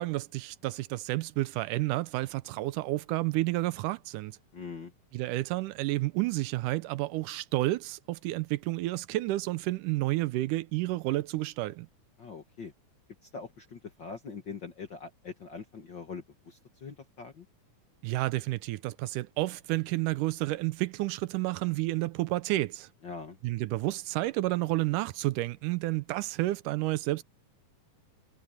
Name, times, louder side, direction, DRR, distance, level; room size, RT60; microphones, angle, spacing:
voice 1, 0.0-4.4 5.1-11.9 18.0-22.9 23.4-27.2, right 18 dB, 85° right, 2.1 m, -30 dB
voice 2, 4.5-4.9 12.2-12.7 13.2-17.5 23.0-23.4, left 5 dB, 45° left, 1.7 m, -43 dB
omnidirectional pair, 3.7 m